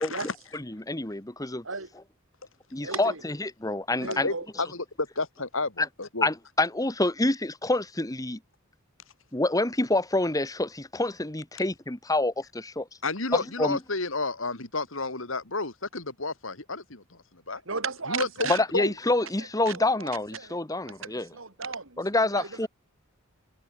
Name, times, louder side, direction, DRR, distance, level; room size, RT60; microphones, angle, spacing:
voice 1, 0.0-0.3 4.0-6.3 13.0-17.0 17.3-17.6 18.1-18.9, left 3 dB, 70° left, 3.6 m, -31 dB
voice 2, 0.5-1.6 2.7-4.3 5.8-5.9 6.2-8.4 9.3-12.9 13.3-13.8 18.5-21.3 22.0-22.7, left 2 dB, 15° left, 1.6 m, -27 dB
voice 3, 2.8-3.2 4.0-4.5 17.7-18.6 19.6-20.6 20.8-22.7, right 4 dB, 70° right, 3.5 m, -35 dB
head